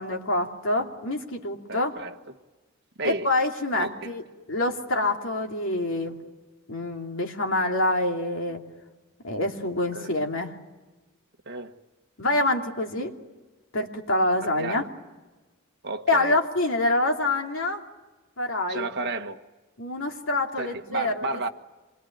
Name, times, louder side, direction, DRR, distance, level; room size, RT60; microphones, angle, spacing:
voice 1, 0.0-2.0 3.0-6.2 6.7-8.6 9.2-10.5 12.2-13.1 13.7-14.8 16.1-17.9 18.4-18.9 19.8-21.3, left 2 dB, 65° left, 2.8 m, -26 dB
voice 2, 1.7-2.2 3.0-3.3 3.7-4.1 9.9-10.1 11.4-11.7 14.4-14.9 15.8-16.4 18.7-19.5 20.6-21.5, right 3 dB, 50° right, 1.5 m, -32 dB
27.0 x 22.0 x 9.4 m
head